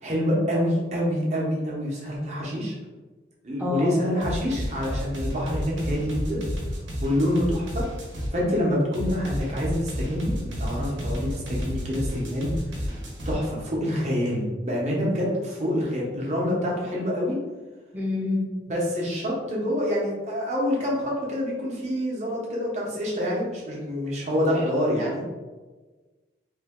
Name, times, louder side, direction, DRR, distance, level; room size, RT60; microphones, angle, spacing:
voice 1, 0.0-2.7 3.4-6.4 7.0-7.9 8.3-12.5 12.9-13.0 13.2-17.4 18.7-25.2, equal, 40° right, -4 dB, 0.9 m, -26 dB
voice 2, 3.6-4.0 17.9-18.5, left 3 dB, 10° right, -4 dB, 0.7 m, -27 dB
sound 1, 4.2-8.3 8.9-13.3, equal, 85° right, 1.0 m, -31 dB
3.3 x 2.2 x 3.5 m, 1.3 s
head